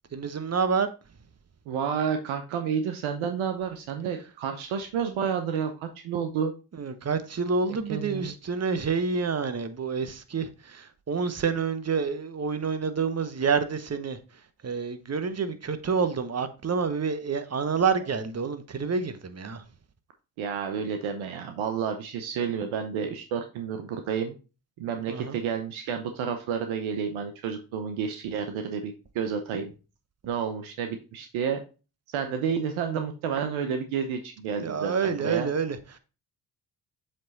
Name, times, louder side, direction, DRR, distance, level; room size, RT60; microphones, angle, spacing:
voice 1, 0.1-0.9 6.7-19.6 25.1-25.4 34.6-36.0, right 5 dB, 30° right, 1.0 m, -28 dB
voice 2, 1.7-6.5 7.9-8.3 20.4-24.3 24.8-29.7 30.2-31.6 32.1-35.5, right 7 dB, 75° right, 0.9 m, -30 dB
7.5 x 3.3 x 3.9 m
hypercardioid pair, 45°, 48 cm